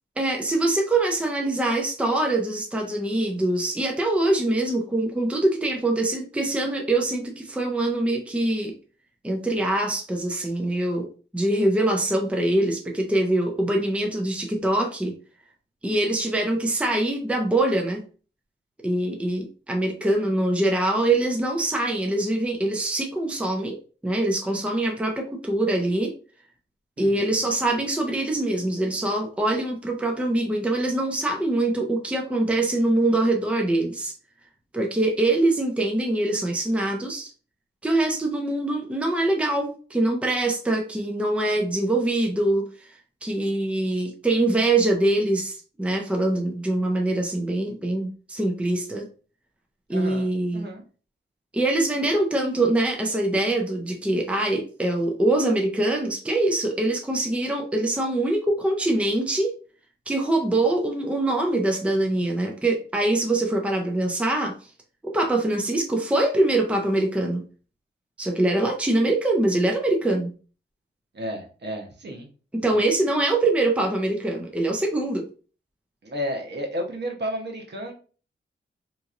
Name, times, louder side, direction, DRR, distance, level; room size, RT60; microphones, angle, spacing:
voice 1, 0.2-8.7 9.2-15.1 15.8-18.0 18.8-23.8 24.0-26.1 27.0-34.1 34.7-37.3 37.8-42.9 43.2-49.1 49.9-50.7 51.5-59.5 60.1-64.5 65.0-67.4 68.2-70.3 72.5-75.3, right 2 dB, 5° right, 1 dB, 0.6 m, -24 dB
voice 2, 27.0-27.4 49.9-50.8 71.1-72.3 72.7-72.8 76.0-77.9, equal, 55° right, 2 dB, 0.9 m, -32 dB
3.9 x 3.0 x 2.5 m, 0.38 s
wide cardioid pair, 115°, 21 cm